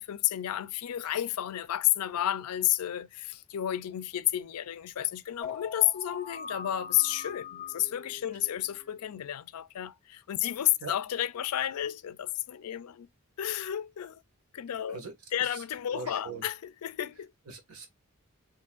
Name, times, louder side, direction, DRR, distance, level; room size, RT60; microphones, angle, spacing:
voice 1, 0.0-13.1 13.4-14.2 14.5-15.0 15.3-17.3, left 13 dB, 85° left, 0.4 m, -31 dB
sound 1, 5.4-9.2, left 5 dB, 30° left, 0.5 m, -43 dB
voice 2, 15.9-16.4 17.5-17.9, right 4 dB, 80° right, 1.6 m, -41 dB
4.3 x 3.2 x 2.4 m
head